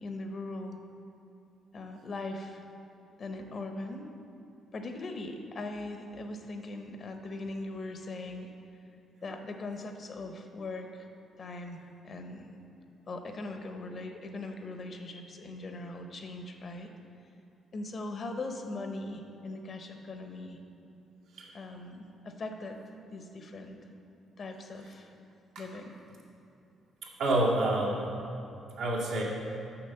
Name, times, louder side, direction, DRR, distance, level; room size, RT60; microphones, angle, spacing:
voice 1, 0.0-0.8 1.7-2.6 3.2-4.1 4.7-8.5 9.2-11.1 11.4-12.5 13.1-16.9 17.7-20.6 21.5-22.8 23.1-23.8 24.4-25.1 25.6-26.0, left 2 dB, 45° left, 5 dB, 1.0 m, -40 dB
voice 2, 27.2-28.1 28.8-29.2, right 1 dB, 80° right, -5 dB, 2.0 m, -27 dB
6.9 x 6.0 x 7.0 m, 2.8 s
cardioid pair, 90°, 0 cm